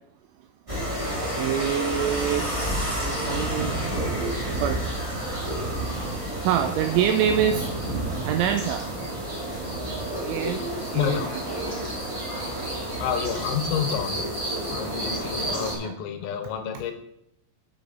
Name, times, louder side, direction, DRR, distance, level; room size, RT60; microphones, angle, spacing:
sound 1, 0.7-15.7, right 1 dB, 30° right, 0.5 m, -30 dB
voice 1, 1.2-3.8 4.4-4.8 6.0-6.1 6.4-7.7 8.3-8.9 10.2-10.7 10.9-11.6 15.8-16.0, right 9 dB, 85° right, 8 dB, 2.7 m, -26 dB
voice 2, 10.9-11.3 13.0-14.2 14.7-16.9, left 8 dB, 85° left, 7 dB, 3.6 m, -29 dB
8.9 x 8.0 x 4.0 m, 0.77 s
omnidirectional pair, 5.9 m